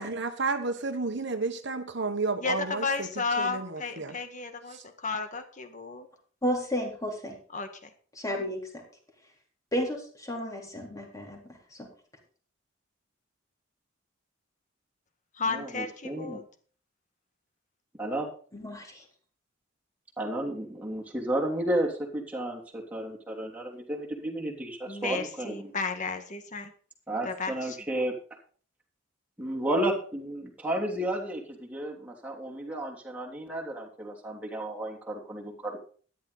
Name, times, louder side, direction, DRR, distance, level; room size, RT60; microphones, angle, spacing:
voice 1, 0.0-3.1 3.4-4.2 4.7-4.8, right 3 dB, 60° right, 8 dB, 1.3 m, -31 dB
voice 2, 2.4-6.1 7.5-7.7 15.4-16.4 24.9-26.7 27.2-27.5, left 4 dB, 40° left, 7 dB, 1.8 m, -33 dB
voice 3, 6.4-7.4 8.2-8.6 9.7-11.9 18.5-18.9, equal, 15° left, 1 dB, 3.8 m, -32 dB
voice 4, 15.4-16.4 18.0-18.3 20.2-25.7 27.1-28.1 29.4-35.8, right 1 dB, 10° right, -2 dB, 3.2 m, -32 dB
13.5 x 11.0 x 4.1 m, 0.43 s
head